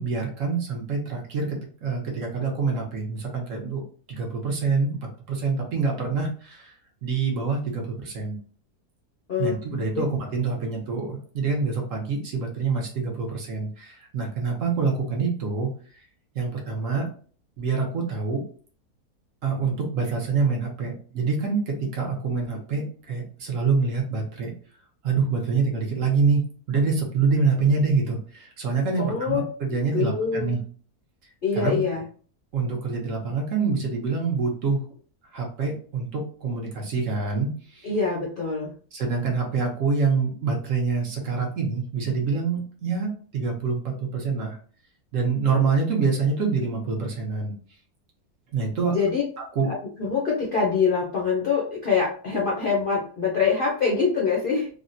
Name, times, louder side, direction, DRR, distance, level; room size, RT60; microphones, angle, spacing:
voice 1, 0.0-3.8 4.1-5.0 5.3-6.7 7.0-8.4 9.4-15.7 16.3-17.1 17.6-18.4 19.4-24.5 25.0-26.4 26.7-30.6 31.5-31.8 32.5-34.8 35.3-37.9 38.9-44.6 45.1-47.5 48.5-48.9 49.5-49.7, right 4 dB, 65° right, 0 dB, 1.1 m, -26 dB
voice 2, 29.0-29.4 29.9-30.5 31.4-32.0 37.8-38.7 48.9-49.2 49.7-54.7, left 5 dB, 55° left, -3 dB, 0.6 m, -24 dB
3.5 x 2.1 x 2.5 m, 0.43 s
omnidirectional pair, 1.6 m